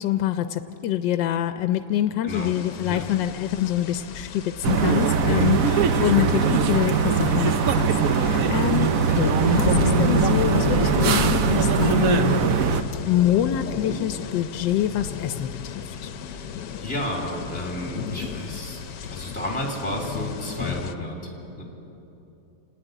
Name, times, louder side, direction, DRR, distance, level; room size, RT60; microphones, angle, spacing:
voice 1, 0.0-12.4 13.0-16.1, left 11 dB, 90° left, 9 dB, 1.3 m, -25 dB
voice 2, 2.2-3.0 5.2-5.5 16.2-21.3 21.6-21.7, left 1 dB, 5° left, 0 dB, 2.8 m, -32 dB
sound 1, 2.3-20.9, left 7 dB, 70° left, 1.3 m, -33 dB
sound 2, 4.6-12.8, right 6 dB, 60° right, 1.1 m, -21 dB
29.0 x 9.9 x 9.1 m, 3.0 s
omnidirectional pair, 1.9 m